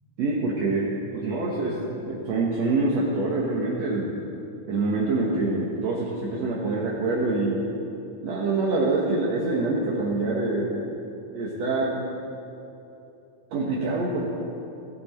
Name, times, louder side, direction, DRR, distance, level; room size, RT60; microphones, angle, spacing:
voice 1, 0.2-4.1 4.7-7.6 8.2-10.9 11.3-12.1 13.5-14.3, right 2 dB, 65° right, -4 dB, 2.5 m, -25 dB
17.0 x 16.5 x 4.4 m, 2.9 s
omnidirectional pair, 3.4 m